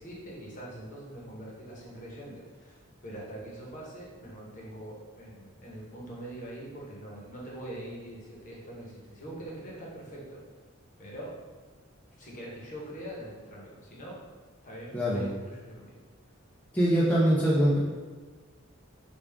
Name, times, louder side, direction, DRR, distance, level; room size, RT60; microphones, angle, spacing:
voice 1, 0.0-10.4 11.0-11.4 12.2-14.2 14.6-15.9, right 1 dB, 40° left, -4 dB, 0.9 m, -43 dB
voice 2, 14.9-15.3 16.7-17.8, equal, 10° left, -7 dB, 0.4 m, -23 dB
3.5 x 2.3 x 3.4 m, 1.4 s
head